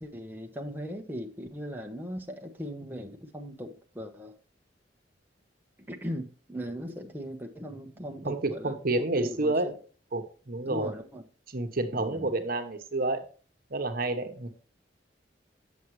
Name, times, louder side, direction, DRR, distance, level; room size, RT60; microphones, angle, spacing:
voice 1, 0.0-4.3 5.9-9.7 10.7-11.2 11.9-12.3, equal, 10° right, 2 dB, 1.0 m, -39 dB
voice 2, 8.2-9.7 10.1-10.9 11.5-13.2 13.7-14.5, right 2 dB, 55° right, 6 dB, 1.1 m, -29 dB
9.3 x 7.1 x 3.2 m, 0.38 s
head